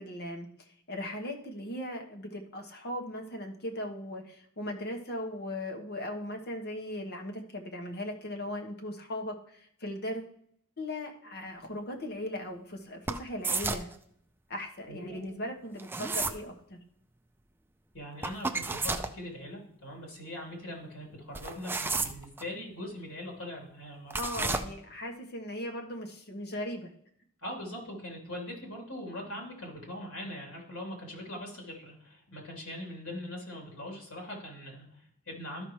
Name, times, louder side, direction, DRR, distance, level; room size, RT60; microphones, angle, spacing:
voice 1, 0.0-10.3 10.8-13.9 14.5-16.8 24.2-26.9, left 1 dB, 50° left, 2 dB, 1.2 m, -38 dB
sound 1, 13.1-13.9 15.8-16.4 18.2-19.1 21.3-22.4 24.1-24.6, right 3 dB, 10° right, 0.4 m, -31 dB
voice 2, 14.9-15.3 17.9-24.5 27.4-35.6, left 1 dB, 65° left, -2 dB, 3.3 m, -41 dB
13.0 x 5.8 x 3.2 m, 0.68 s
head